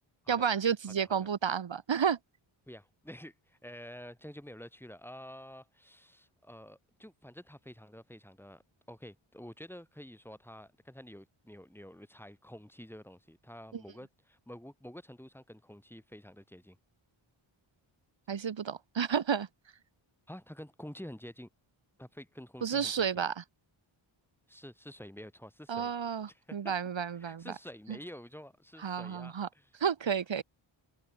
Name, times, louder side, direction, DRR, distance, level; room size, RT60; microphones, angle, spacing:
voice 1, 0.3-2.2 18.3-19.5 22.6-23.3 25.7-27.4 28.8-29.5 29.8-30.4, right 7 dB, 60° right, 3.3 m, -31 dB
voice 2, 2.7-8.6 8.9-16.8 20.3-21.5 22.0-23.2 24.5-25.9 26.3-26.8 27.1-29.7, equal, 5° left, 5.6 m, -49 dB
wide cardioid pair, 140°, 49 cm